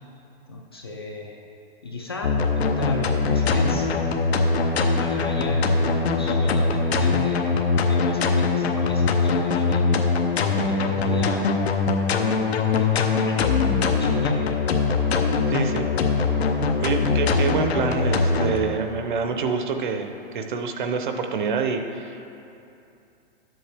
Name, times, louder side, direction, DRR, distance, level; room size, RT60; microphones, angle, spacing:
voice 1, 0.5-1.4 1.8-4.1 4.6-7.4 7.8-10.1 10.6-11.5 12.8-13.4 13.9-14.6 15.0-15.2, left 2 dB, 25° left, 0 dB, 0.3 m, -35 dB
sound 1, 2.2-18.6, left 4 dB, 85° left, 0.9 m, -22 dB
voice 2, 15.5-15.9 16.4-16.5 16.8-22.3, right 5 dB, 50° right, 6 dB, 0.7 m, -26 dB
11.5 x 7.8 x 3.4 m, 2.7 s
hypercardioid pair, 170°, 31 cm